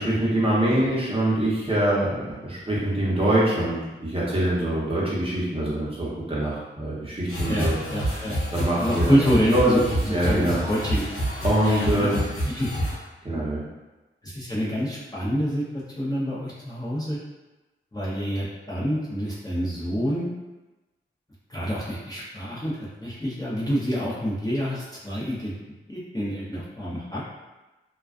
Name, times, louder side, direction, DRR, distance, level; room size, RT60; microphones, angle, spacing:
voice 1, 0.0-7.7 8.5-9.2 9.5-9.8 10.1-10.6 11.4-12.2 13.2-13.6, right 1 dB, 25° right, -8 dB, 0.9 m, -24 dB
sound 1, 7.3-12.9, equal, 85° left, 0.8 m, -28 dB
voice 2, 7.5-8.4 8.8-11.0 11.6-12.1 12.5-12.7 14.2-17.2 17.9-20.3 21.5-22.7 23.0-25.5 25.9-27.2, equal, 15° left, -9 dB, 0.7 m, -27 dB
2.3 x 2.2 x 2.4 m, 1.1 s
cardioid pair, 60°, 21 cm